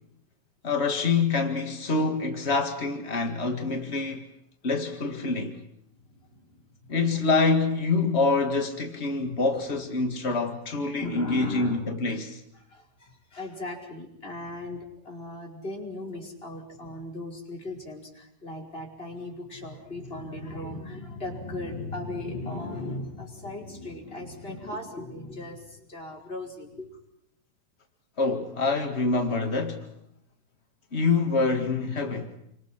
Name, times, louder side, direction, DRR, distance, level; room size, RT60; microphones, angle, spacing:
voice 1, 0.6-4.2 4.6-5.5 6.9-12.4 28.2-29.9 30.9-32.3, left 3 dB, 45° left, 0.8 m, -26 dB
voice 2, 6.1-7.3 9.5-9.6 11.0-11.9 12.5-26.9, left 2 dB, 15° left, 5.3 m, -38 dB
29.5 x 25.5 x 5.8 m
omnidirectional pair, 4.6 m